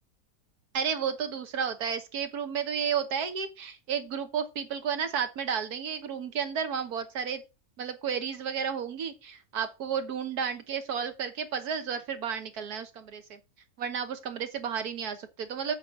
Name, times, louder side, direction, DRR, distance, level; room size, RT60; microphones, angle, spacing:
voice 1, 0.7-7.4 7.8-13.4 13.8-15.7, right 7 dB, 90° right, 1.7 m, -32 dB
7.6 x 4.7 x 5.9 m
omnidirectional pair, 1.6 m